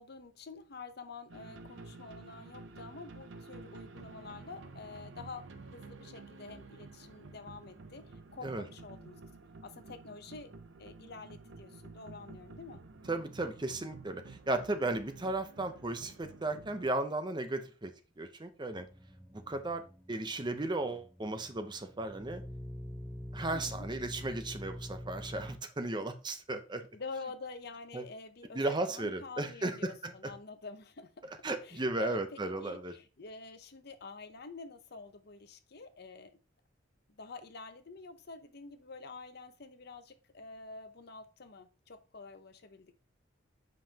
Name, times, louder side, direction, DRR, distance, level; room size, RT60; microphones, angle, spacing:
voice 1, 0.0-9.2 9.6-10.5 10.8-12.8 23.5-23.9 26.9-31.3 31.6-36.4 37.1-43.0, left 4 dB, 60° left, 0.8 m, -48 dB
sound 1, 1.3-16.9, right 3 dB, 75° right, 0.7 m, -51 dB
voice 2, 13.1-17.9 18.2-18.9 19.3-19.8 20.1-22.4 23.3-26.9 27.9-28.0 28.5-30.3 31.3-32.9, right 2 dB, 25° right, 0.7 m, -35 dB
sound 2, 18.7-25.6, equal, ahead, 0.9 m, -46 dB
7.6 x 5.3 x 2.9 m
head